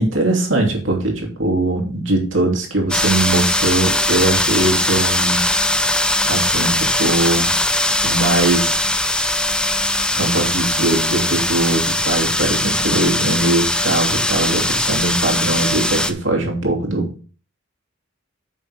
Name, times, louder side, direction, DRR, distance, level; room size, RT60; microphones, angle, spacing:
voice 1, 0.0-5.4 6.2-7.5 8.0-8.8 10.1-17.2, right 2 dB, 65° right, 1 dB, 2.8 m, -20 dB
sound 1, 2.9-16.1, left 1 dB, 5° left, 0.5 m, -20 dB
9.4 x 6.3 x 3.5 m, 0.38 s
head